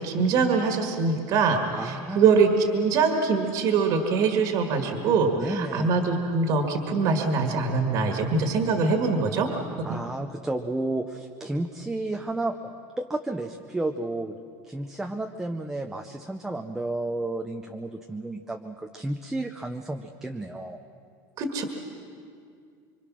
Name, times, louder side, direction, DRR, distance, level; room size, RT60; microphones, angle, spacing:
voice 1, 0.0-9.5 9.8-10.0 21.4-21.6, right 4 dB, 40° right, 4 dB, 1.8 m, -23 dB
voice 2, 1.8-2.5 5.4-5.9 9.8-12.6 13.0-14.4 14.6-20.8, right 2 dB, 5° right, 4 dB, 0.6 m, -32 dB
25.5 x 25.0 x 6.2 m, 2.3 s
cardioid pair, 180°, 10 cm